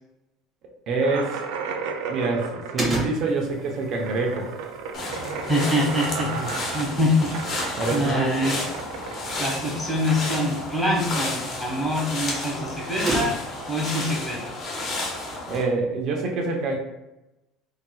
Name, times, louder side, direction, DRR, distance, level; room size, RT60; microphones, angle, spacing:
voice 1, 0.9-1.4 2.1-4.5 6.4-6.5 7.8-8.3 15.5-16.8, right 3 dB, 55° right, 1 dB, 0.8 m, -26 dB
sound 1, 1.0-10.4, right 5 dB, 75° right, 0.3 m, -34 dB
sound 2, 2.8-13.7, right 2 dB, 25° right, 1.4 m, -36 dB
sound 3, 4.9-15.6, left 2 dB, 45° left, 1.0 m, -32 dB
voice 2, 5.5-8.6 9.4-13.3 13.7-14.5, left 1 dB, 5° left, -4 dB, 1.4 m, -25 dB
3.8 x 2.7 x 2.3 m, 0.94 s
supercardioid pair, 90°, 0 cm